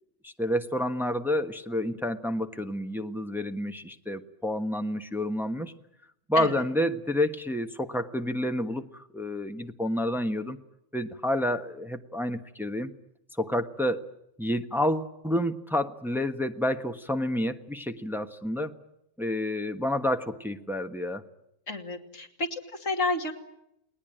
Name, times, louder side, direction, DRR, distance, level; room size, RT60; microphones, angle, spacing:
voice 1, 0.2-5.7 6.3-10.6 10.9-12.9 13.4-14.0 14.4-18.7 19.2-21.2, left 1 dB, ahead, 6 dB, 1.2 m, -29 dB
voice 2, 21.7-23.3, left 3 dB, 75° left, 2 dB, 3.0 m, -30 dB
30.0 x 19.5 x 9.0 m, 0.84 s
omnidirectional pair, 1.3 m